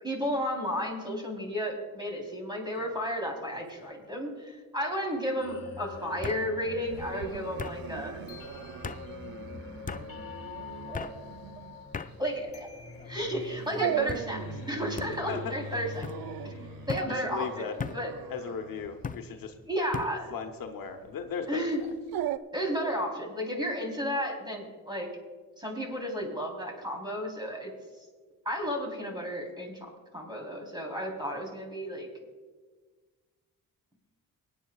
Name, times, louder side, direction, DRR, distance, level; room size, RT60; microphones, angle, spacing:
voice 1, 0.0-8.2 10.9-11.1 11.6-11.7 12.2-12.7 13.0-16.0 16.4-16.6 16.9-18.1 19.7-20.3 21.5-21.8 22.5-25.1 25.6-27.7 28.5-32.1, equal, 10° right, 0 dB, 3.6 m, -33 dB
sound 1, 2.8-3.2 3.5-4.1 5.2-5.3 6.2-6.4 7.6-7.8 8.8-9.0 9.9-10.1 10.9-11.2 11.9-12.1 12.9-13.3 14.1-14.3 15.0-15.1 16.0-16.2 16.9-17.1 17.8-18.0 19.0-19.2 19.9-20.1, left 5 dB, 25° left, 0.5 m, -37 dB
sound 2, 5.4-18.4, left 4 dB, 40° left, 1.5 m, -44 dB
Dog, 6.9-22.4, right 12 dB, 80° right, 0.5 m, -39 dB
voice 2, 15.3-15.6 17.1-17.8 18.3-19.5 20.3-21.7, left 6 dB, 70° left, 6 dB, 1.0 m, -37 dB
24.5 x 9.2 x 2.4 m, 1.4 s
cardioid pair, 80°, 35 cm